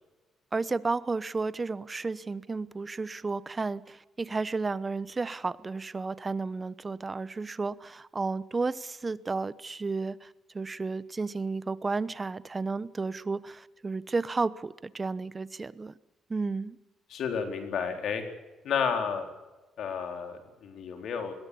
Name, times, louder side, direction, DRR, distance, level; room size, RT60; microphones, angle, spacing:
voice 1, 0.5-15.9 16.3-16.8, right 3 dB, 25° right, 17 dB, 0.9 m, -32 dB
voice 2, 17.1-18.2 18.6-19.3 19.8-21.3, left 6 dB, 70° left, 5 dB, 4.1 m, -31 dB
21.5 x 16.0 x 8.6 m, 1.1 s
cardioid pair, 90°, 0 cm